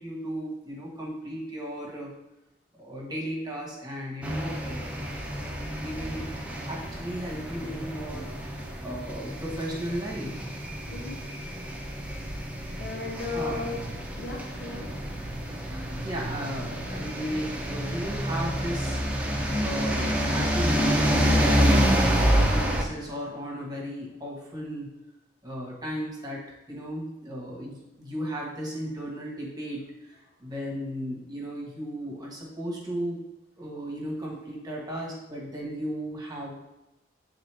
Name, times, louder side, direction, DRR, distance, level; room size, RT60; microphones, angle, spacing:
voice 1, 0.0-2.1 2.8-5.1 5.8-6.3 6.7-10.4 13.3-13.6 16.0-24.9 25.4-33.2 33.6-36.6, equal, 25° right, -2 dB, 1.3 m, -35 dB
sound 1, 4.2-22.8, equal, 5° right, 0.7 m, -28 dB
voice 2, 10.9-11.2 12.8-13.8 14.2-14.9, left 3 dB, 85° left, -3 dB, 0.9 m, -35 dB
7.9 x 3.8 x 3.4 m, 0.95 s
head